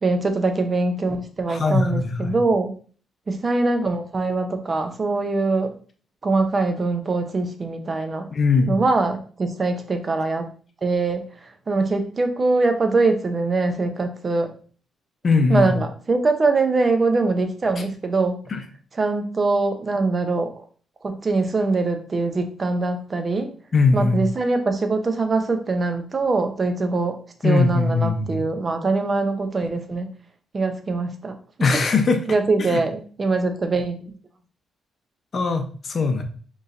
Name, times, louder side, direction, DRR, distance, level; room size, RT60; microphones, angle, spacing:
voice 1, 0.0-2.7 3.3-5.7 6.2-8.3 8.7-10.5 10.8-14.5 15.5-18.4 19.0-20.6 21.0-23.5 23.9-27.2 27.4-30.1 30.5-31.3 31.6-31.7 32.3-34.1, right 3 dB, 25° right, 6 dB, 0.6 m, -23 dB
voice 2, 1.5-2.3 8.3-8.8 15.2-15.7 18.5-18.6 23.7-24.2 27.4-28.4 31.6-32.2 32.6-32.8 35.3-36.2, left 4 dB, 35° left, 6 dB, 0.7 m, -20 dB
5.1 x 3.1 x 2.5 m, 0.43 s
cardioid pair, 130°, 0 cm